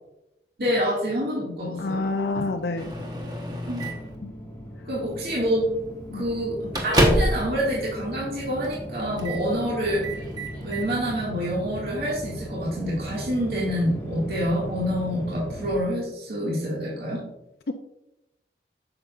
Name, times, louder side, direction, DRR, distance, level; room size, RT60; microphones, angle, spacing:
voice 1, 0.6-2.1 3.7-3.9 4.9-5.7 6.1-10.2 10.6-17.2, equal, 60° right, -5 dB, 2.1 m, -27 dB
voice 2, 1.8-2.9 4.2-4.3 6.1-6.3 17.7-17.8, left 3 dB, 70° left, 5 dB, 0.5 m, -28 dB
sound 1, 1.9-15.8, equal, 15° left, 1.4 m, -38 dB
Microwave oven, 2.8-4.2 5.1-5.3 5.7-5.8 6.2-7.5 7.8-7.9 8.6-8.9 9.2-9.5 9.8-10.9, equal, 25° right, 1.1 m, -27 dB
9.0 x 6.9 x 2.5 m, 0.89 s
head